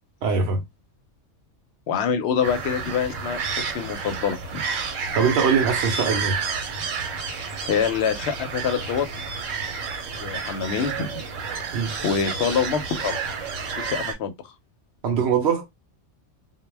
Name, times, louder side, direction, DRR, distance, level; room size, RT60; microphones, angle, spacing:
voice 1, 0.2-0.6 5.1-6.4 11.7-12.0 15.0-15.7, right 6 dB, 65° right, 0.8 m, -22 dB
voice 2, 1.9-3.4 3.7-4.6 7.7-9.1 10.2-11.3 12.0-13.2 13.8-14.3, left 7 dB, 65° left, 0.8 m, -25 dB
sound 1, 2.4-14.1, right 5 dB, 90° right, 1.0 m, -30 dB
2.2 x 2.1 x 3.2 m
omnidirectional pair, 1.3 m